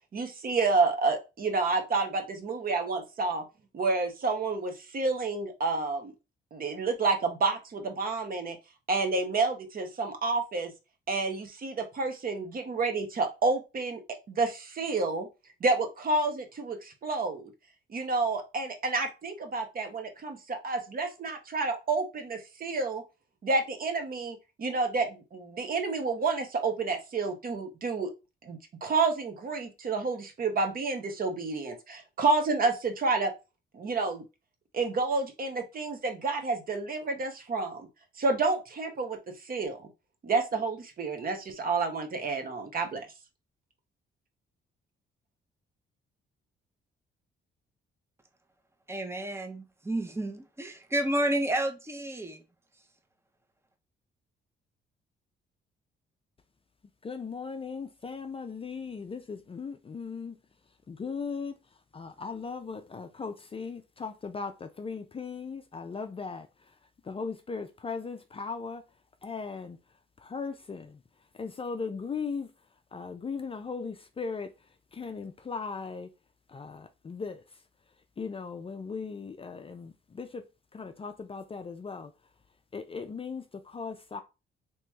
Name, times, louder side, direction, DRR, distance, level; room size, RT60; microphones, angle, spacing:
voice 1, 0.1-3.4 3.7-6.1 6.5-8.6 8.9-10.7 11.1-14.0 14.3-15.3 15.6-17.5 17.9-23.0 23.4-28.1 28.4-33.3 33.7-34.2 34.7-37.9 38.2-39.9 40.2-43.1, right 3 dB, 45° right, 1.0 m, -29 dB
voice 2, 48.9-52.4, right 1 dB, 10° right, 0.8 m, -31 dB
voice 3, 57.0-60.4 60.9-61.6 61.9-66.5 67.0-68.8 69.2-69.8 70.2-71.0 71.4-72.5 72.9-74.5 74.9-76.1 76.5-77.4 78.2-80.4 80.7-82.1 82.7-84.2, left 5 dB, 30° left, 0.5 m, -38 dB
3.0 x 3.0 x 3.5 m
cardioid pair, 90°, 20 cm